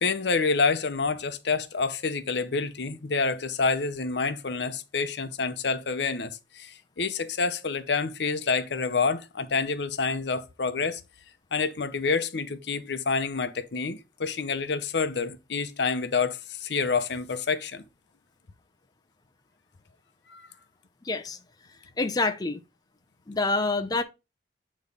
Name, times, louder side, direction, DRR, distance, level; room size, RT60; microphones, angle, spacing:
voice 1, 0.0-11.0 11.5-17.8 20.3-20.4, left 4 dB, 65° left, 0.7 m, -28 dB
voice 2, 21.0-21.4 22.0-22.6 23.3-24.0, left 3 dB, 20° left, 0.5 m, -26 dB
8.2 x 3.2 x 5.2 m
head